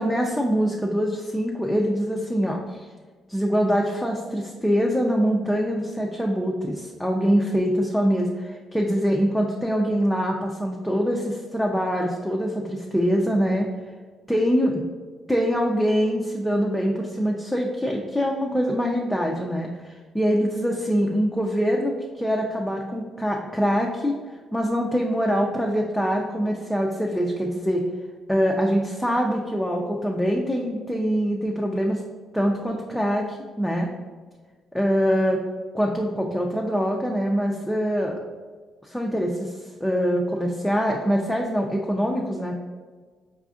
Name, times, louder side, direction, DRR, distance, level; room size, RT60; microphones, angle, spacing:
voice 1, 0.0-2.9 3.3-13.7 14.3-14.8 15.3-24.2 24.5-27.8 28.3-32.0 32.3-33.9 34.8-35.4 35.7-38.2 38.8-39.5 39.8-42.5, equal, 5° left, -1 dB, 0.4 m, -24 dB
4.8 x 2.4 x 2.4 m, 1.4 s
cardioid pair, 90°, 0 cm